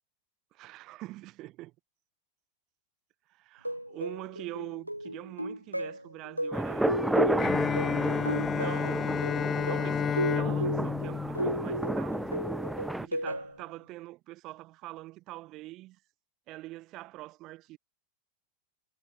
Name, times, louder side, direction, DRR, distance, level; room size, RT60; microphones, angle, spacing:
voice 1, 0.5-1.7 3.3-12.4 13.0-16.0 16.5-17.8, right 18 dB, 40° right, 7.5 m, -44 dB
sound 1, 3.6-13.6, right 1 dB, 90° right, 1.9 m, -35 dB
sound 2, 6.5-13.1, right 1 dB, 5° right, 0.4 m, -31 dB
Bowed string instrument, 7.4-12.3, left 8 dB, 25° left, 1.8 m, -31 dB
figure-of-eight pair, 90°, 0 cm